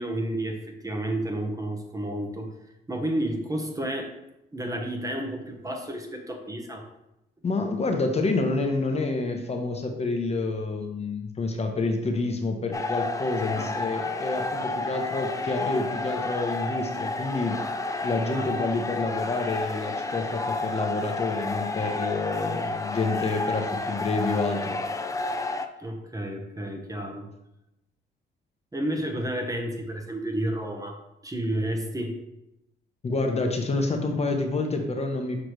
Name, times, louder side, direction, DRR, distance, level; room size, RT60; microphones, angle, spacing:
voice 1, 0.0-2.5 2.9-4.1 4.5-6.9 13.5-13.7 18.3-18.5 25.8-27.3 28.7-32.2, right 1 dB, 15° right, 3 dB, 1.0 m, -31 dB
voice 2, 7.4-17.6 18.0-24.8 33.0-35.4, left 3 dB, 30° left, 3 dB, 0.8 m, -28 dB
sound 1, 12.7-25.7, left 3 dB, 15° left, 0.5 m, -30 dB
6.5 x 5.0 x 3.1 m, 0.87 s
cardioid pair, 90°, 20 cm